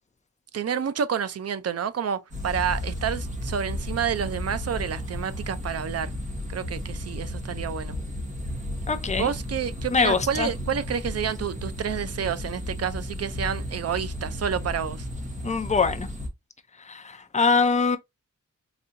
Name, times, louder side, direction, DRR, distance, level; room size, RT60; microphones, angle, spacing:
voice 1, 0.5-6.1 6.5-8.0 9.2-15.1, right 7 dB, 55° right, 0.5 m, -29 dB
sound 1, 2.3-16.3, left 1 dB, 25° right, 1.1 m, -34 dB
voice 2, 8.9-9.3 9.9-10.5 15.4-16.1 16.8-18.0, left 4 dB, 25° left, 0.5 m, -23 dB
4.1 x 2.7 x 2.5 m
wide cardioid pair, 130°, 30 cm